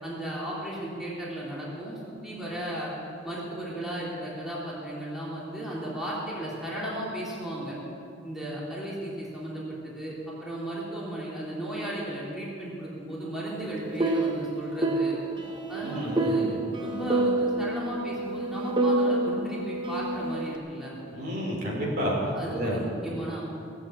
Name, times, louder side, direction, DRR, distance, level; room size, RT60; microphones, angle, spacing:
voice 1, 0.0-2.9 3.2-7.8 8.2-10.1 10.4-15.1 15.7-20.9 22.3-23.4, right 1 dB, ahead, -8 dB, 3.5 m, -35 dB
sound 1, 13.6-20.5, right 2 dB, 25° right, 1.1 m, -28 dB
voice 2, 15.8-16.6 21.1-22.1 22.6-22.8, equal, 55° right, -3 dB, 3.7 m, -30 dB
17.5 x 7.8 x 8.6 m, 2.6 s
head